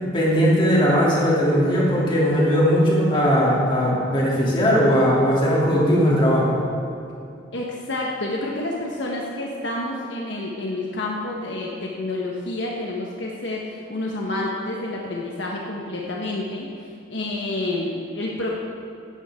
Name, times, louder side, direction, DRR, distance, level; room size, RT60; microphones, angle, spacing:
voice 1, 0.0-6.5, equal, 25° left, -5 dB, 3.2 m, -19 dB
voice 2, 7.5-18.5, left 2 dB, 60° left, -2 dB, 1.5 m, -29 dB
16.0 x 12.5 x 3.8 m, 2.7 s
head